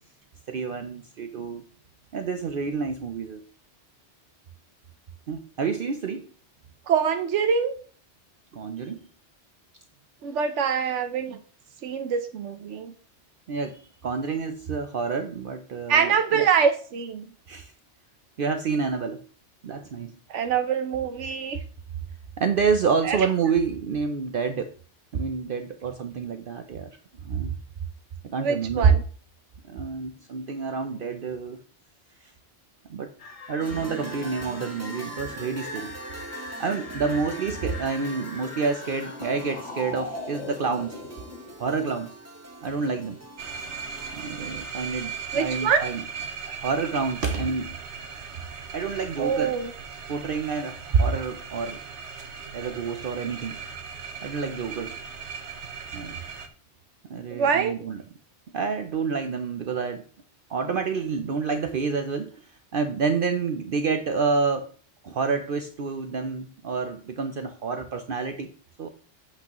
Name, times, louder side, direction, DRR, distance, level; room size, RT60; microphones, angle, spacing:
voice 1, 0.5-1.6 2.1-3.4 5.3-6.3 8.5-9.1 13.5-16.5 17.5-17.7 18.4-19.2 19.6-20.2 22.4-24.7 25.1-26.9 27.2-27.6 28.2-29.0 29.6-31.6 32.2-32.3 32.9-33.1 33.5-35.9 36.6-41.0 41.6-42.1 42.6-43.2 44.1-46.0 46.6-47.7 48.7-49.6 50.1-51.8 52.5-53.6 54.2-55.0 55.9-56.2 57.1-58.0 58.5-60.0 60.5-64.7 65.0-68.5 68.8-68.9, right 5 dB, 55° right, 7 dB, 0.8 m, -28 dB
voice 2, 6.9-7.7 10.2-11.4 11.8-12.9 15.9-17.3 20.3-21.6 23.0-23.3 28.4-29.0 45.3-45.9 46.5-46.6 49.2-49.7 57.3-57.8, right 6 dB, 90° right, 7 dB, 1.1 m, -24 dB
sound 1, 33.2-41.5, left 3 dB, 85° left, 1.9 m, -40 dB
sound 2, 33.6-44.2, right 2 dB, 15° right, 1.0 m, -42 dB
sound 3, 43.4-56.5, right 6 dB, 75° right, 1.3 m, -38 dB
8.3 x 7.9 x 3.0 m, 0.42 s
omnidirectional pair, 1.2 m